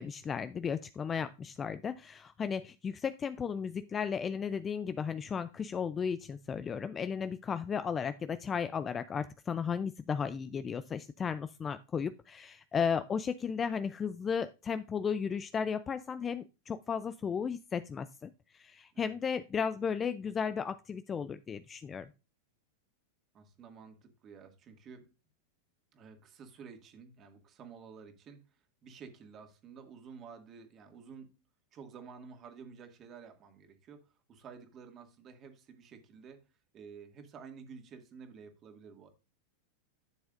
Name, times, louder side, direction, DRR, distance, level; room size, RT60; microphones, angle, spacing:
voice 1, 0.0-22.1, left 6 dB, 25° left, 13 dB, 0.4 m, -35 dB
voice 2, 23.3-25.1 25.9-31.3 31.7-36.4 36.7-39.1, right 6 dB, 35° right, 6 dB, 2.0 m, -51 dB
11.0 x 7.0 x 2.5 m, 0.29 s
hypercardioid pair, 100°, 0 cm